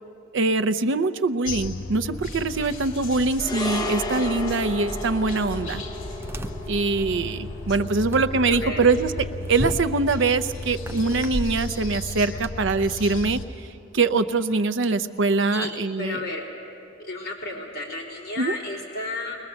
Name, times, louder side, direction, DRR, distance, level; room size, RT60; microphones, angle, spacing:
voice 1, 0.3-5.8 6.7-13.7 13.9-16.2 18.4-18.6, right 3 dB, 65° right, 12 dB, 0.7 m, -23 dB
sound 1, 1.4-13.4, left 2 dB, 80° left, 1.8 m, -35 dB
sound 2, 3.4-11.9 12.1-12.3, left 1 dB, 20° left, 0.8 m, -35 dB
sound 3, 5.2-12.5, right 1 dB, 10° right, 0.5 m, -37 dB
voice 2, 16.0-16.4 17.0-19.4, left 2 dB, 50° left, -4 dB, 4.0 m, -32 dB
22.0 x 20.5 x 7.1 m, 2.8 s
head